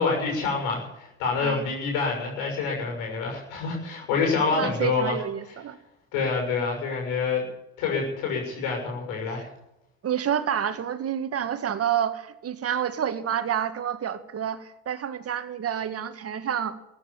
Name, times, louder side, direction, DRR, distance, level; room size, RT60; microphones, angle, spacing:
voice 1, 0.0-5.1 6.1-7.4 7.8-9.5, left 4 dB, 80° left, 1 dB, 6.5 m, -27 dB
voice 2, 4.5-5.8 9.3-9.4 10.0-16.8, right 9 dB, 50° right, 10 dB, 1.9 m, -29 dB
14.5 x 9.7 x 10.0 m, 0.86 s
supercardioid pair, 75°, 32 cm